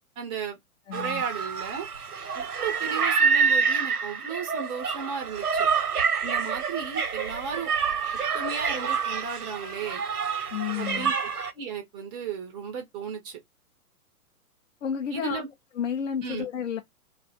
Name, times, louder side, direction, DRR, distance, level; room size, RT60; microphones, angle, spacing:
voice 1, 0.2-0.6 0.9-1.9 2.3-5.7 6.2-7.7 8.3-10.0 10.8-11.3 11.5-13.4 15.1-15.5 16.2-16.5, right 6 dB, 10° right, 0.5 m, -34 dB
voice 2, 0.9-1.2 10.5-11.1 14.8-15.4 15.7-16.8, left 8 dB, 55° left, 0.7 m, -31 dB
sound 1, 0.9-11.5, right 6 dB, 80° right, 0.9 m, -27 dB
2.6 x 2.4 x 4.0 m
figure-of-eight pair, 115°, 45 cm